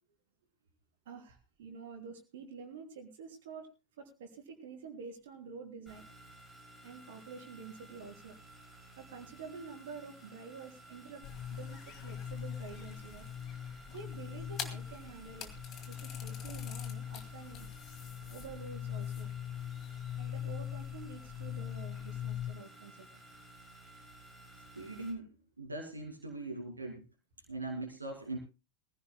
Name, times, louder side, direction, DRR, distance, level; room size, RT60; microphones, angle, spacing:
voice 1, 1.0-3.7 4.0-6.1 6.8-8.4 9.0-11.2 11.5-13.2 13.9-17.7 18.3-19.3 20.2-23.2, right 5 dB, 55° right, 2 dB, 3.3 m, -48 dB
sound 1, 5.9-25.1, right 1 dB, 10° left, 7.6 m, -55 dB
sound 2, 11.2-22.5, left 9 dB, 30° left, 2.2 m, -41 dB
voice 2, 24.8-25.3 25.6-27.0 27.5-28.4, right 2 dB, 80° right, 1 dB, 2.3 m, -40 dB
22.5 x 15.5 x 2.2 m, 0.28 s
figure-of-eight pair, 90°, 0 cm